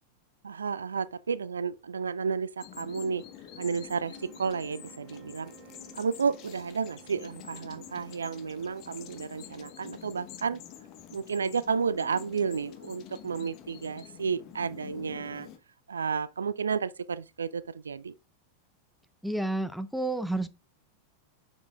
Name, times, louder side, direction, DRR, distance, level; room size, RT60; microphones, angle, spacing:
voice 1, 0.4-3.2 3.6-5.5 5.9-10.6 11.1-15.5 15.9-18.1, right 5 dB, 70° right, 0.3 m, -32 dB
sound 1, 2.6-15.6, left 10 dB, 40° left, 1.0 m, -48 dB
sound 2, 3.9-9.4, right 12 dB, 45° right, 0.7 m, -55 dB
voice 2, 19.2-20.5, right 2 dB, ahead, 0.6 m, -30 dB
6.9 x 6.3 x 2.4 m
figure-of-eight pair, 90°, 0 cm